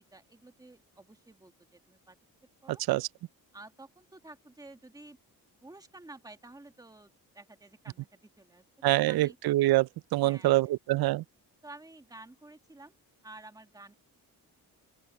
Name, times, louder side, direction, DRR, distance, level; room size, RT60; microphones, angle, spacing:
voice 1, 0.0-2.2 2.6-2.8 3.5-5.2 5.6-9.4 10.2-10.7 11.6-12.9 13.2-13.9, right 2 dB, 10° right, 1.8 m, -51 dB
voice 2, 8.8-11.2, right 17 dB, 75° right, 0.5 m, -25 dB
open air
cardioid pair, 115°, 38 cm